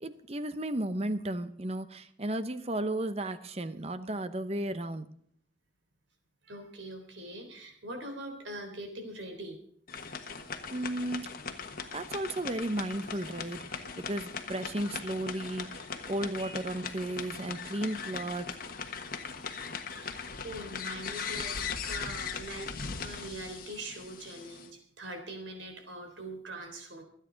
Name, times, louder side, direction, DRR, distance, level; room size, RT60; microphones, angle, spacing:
voice 1, 0.0-5.1 10.7-11.3 11.9-18.5, right 1 dB, 30° right, 12 dB, 0.8 m, -34 dB
voice 2, 6.4-9.6 16.4-16.6 20.0-20.2 20.4-21.6 21.8-22.7 23.0-27.0, right 1 dB, 80° right, 4 dB, 3.6 m, -42 dB
sound 1, 9.9-24.7, left 5 dB, 50° left, 1.3 m, -39 dB
24.5 x 9.1 x 3.9 m, 0.63 s
head